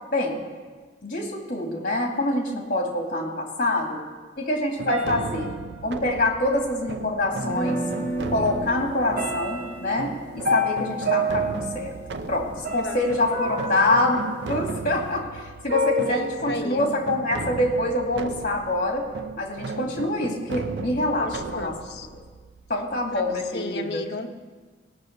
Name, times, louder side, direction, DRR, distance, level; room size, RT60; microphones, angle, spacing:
voice 1, 0.1-0.4 1.0-4.0 4.4-5.5 5.8-7.8 8.3-11.9 12.3-14.2 14.5-19.0 19.4-21.7 22.1-22.2 22.7-24.0, left 2 dB, 50° left, 1 dB, 2.4 m, -25 dB
sound 1, 4.8-23.5, right 3 dB, 85° right, 0.7 m, -36 dB
sound 2, 4.9-6.3 7.5-7.6 8.1-8.6 9.2-15.1 15.7-16.5, right 1 dB, 55° right, 1.3 m, -30 dB
sound 3, 7.4-13.4, right 1 dB, 15° left, 1.1 m, -34 dB
voice 2, 16.0-17.0 21.2-22.1 23.1-24.3, left 3 dB, 70° left, 4 dB, 1.1 m, -34 dB
18.5 x 6.2 x 8.1 m, 1.4 s
head